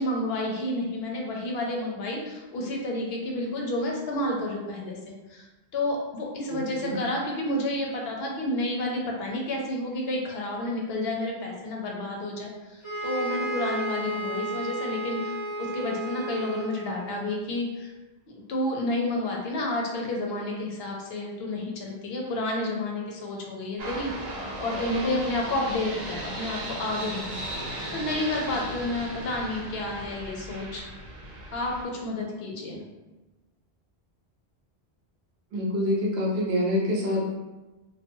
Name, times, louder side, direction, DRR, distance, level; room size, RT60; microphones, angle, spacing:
voice 1, 0.0-5.5 5.7-17.9 18.5-27.6 27.9-30.9 31.5-32.8, left 1 dB, 70° left, -1 dB, 0.8 m, -30 dB
voice 2, 6.5-7.0 35.5-37.2, left 1 dB, 75° right, -2 dB, 0.9 m, -26 dB
sound 1, 12.8-17.2, right 1 dB, ahead, 0.9 m, -33 dB
sound 2, 23.8-31.8, right 1 dB, 50° right, 0.5 m, -36 dB
2.7 x 2.1 x 2.6 m, 1.1 s
omnidirectional pair, 1.1 m